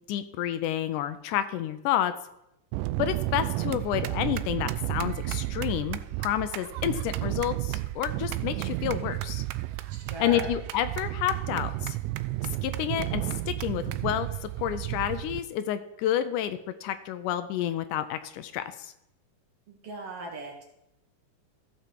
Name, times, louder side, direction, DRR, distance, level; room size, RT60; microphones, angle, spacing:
voice 1, 0.1-2.1 3.0-9.4 10.2-12.0 12.6-18.9, left 11 dB, 80° left, 11 dB, 2.0 m, -30 dB
sound 1, 2.7-15.4, right 17 dB, 85° right, 2.1 m, -32 dB
voice 2, 9.9-10.5 19.7-20.6, right 2 dB, 55° right, 1 dB, 2.2 m, -38 dB
15.5 x 5.9 x 4.5 m, 0.83 s
omnidirectional pair, 3.8 m